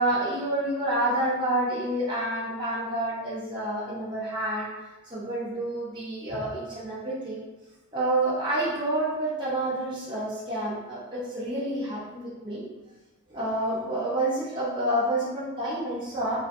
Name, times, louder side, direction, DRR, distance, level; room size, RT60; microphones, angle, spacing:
voice 1, 0.0-4.7 5.1-7.4 7.9-12.7 13.3-16.4, right 1 dB, 20° right, -9 dB, 0.6 m, -28 dB
2.7 x 2.6 x 2.5 m, 1.1 s
head